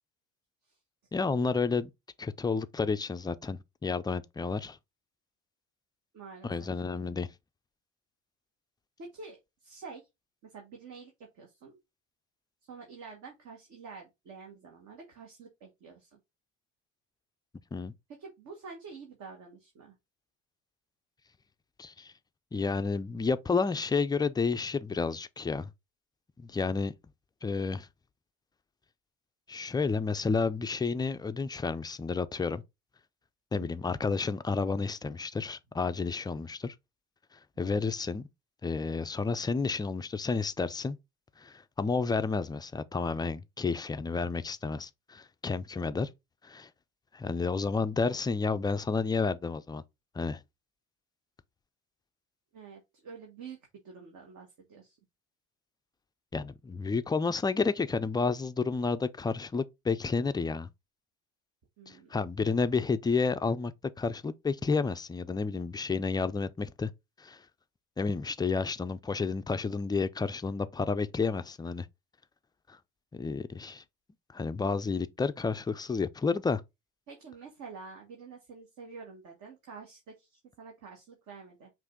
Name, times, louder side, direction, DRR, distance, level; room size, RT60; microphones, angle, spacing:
voice 1, 1.1-1.9 2.2-4.8 6.4-7.3 17.7-17.9 21.8-22.1 22.5-25.7 26.4-26.9 27.4-27.9 29.5-32.6 33.5-36.7 37.6-38.3 38.6-41.0 41.4-46.1 46.4-46.7 47.1-49.8 50.1-50.4 56.3-60.7 61.9-63.7 64.0-66.9 67.2-67.4 68.0-71.9 72.7-72.8 73.1-73.8 74.3-76.6, left 4 dB, 10° left, 0.4 m, -31 dB
voice 2, 6.1-6.7 9.0-10.1 10.4-11.8 12.7-16.2 18.2-20.0 33.6-33.7 52.5-55.0 61.8-62.1 77.1-81.7, right 5 dB, 55° right, 1.5 m, -48 dB
5.5 x 2.6 x 3.6 m
hypercardioid pair, 65°, 36 cm